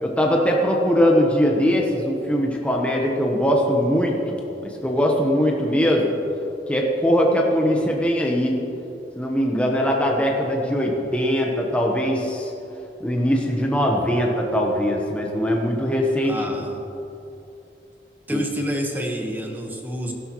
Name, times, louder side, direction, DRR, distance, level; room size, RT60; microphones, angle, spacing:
voice 1, 0.0-6.2 6.7-8.6 9.2-12.5 13.0-16.6 18.3-18.4, equal, 5° left, -1 dB, 1.0 m, -21 dB
voice 2, 16.2-16.8 18.3-20.1, equal, 10° right, 0 dB, 1.2 m, -28 dB
17.5 x 12.0 x 3.1 m, 2.8 s
head